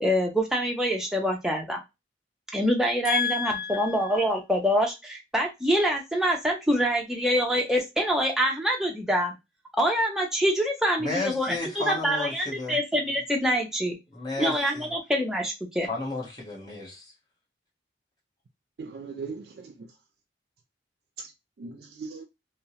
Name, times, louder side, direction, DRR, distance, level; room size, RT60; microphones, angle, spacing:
voice 1, 0.0-1.8 2.5-9.3 9.8-14.0 14.4-15.9, equal, 5° right, 0.5 m, -25 dB
voice 2, 3.0-4.2 11.0-12.8 14.1-14.9 15.9-17.1, left 4 dB, 20° left, 0.9 m, -32 dB
voice 3, 18.8-19.9 21.2-21.3 21.6-22.2, right 4 dB, 60° right, 0.3 m, -39 dB
2.7 x 2.0 x 2.7 m
head